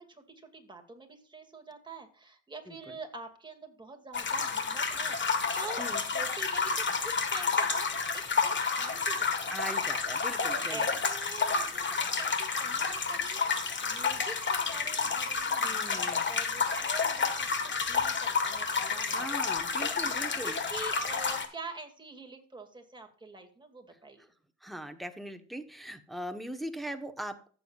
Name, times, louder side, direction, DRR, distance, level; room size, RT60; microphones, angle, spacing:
voice 1, 0.0-5.8 6.1-7.9 8.1-9.9 10.4-24.3, right 3 dB, 15° right, 4 dB, 2.2 m, -46 dB
voice 2, 2.7-3.0 5.8-6.0 9.5-11.0 15.6-16.3 19.0-20.6 24.2-24.3 24.6-27.5, right 1 dB, ahead, 5 dB, 1.1 m, -40 dB
sound 1, 4.1-21.5, left 5 dB, 40° left, 1.5 m, -30 dB
14.5 x 7.1 x 2.4 m, 0.42 s
cardioid pair, 90°, 30 cm